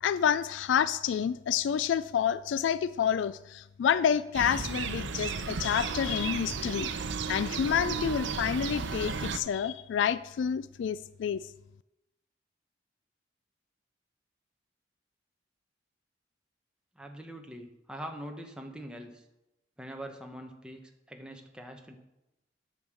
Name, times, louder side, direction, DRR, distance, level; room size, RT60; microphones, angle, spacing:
voice 1, 0.0-6.9 7.3-11.4, left 8 dB, 85° left, 16 dB, 0.3 m, -28 dB
sound 1, 4.3-9.4, right 5 dB, 85° right, 0.7 m, -34 dB
voice 2, 16.9-19.3 19.8-22.0, right 1 dB, 5° right, 3 dB, 1.0 m, -43 dB
9.3 x 7.1 x 6.2 m, 0.93 s
head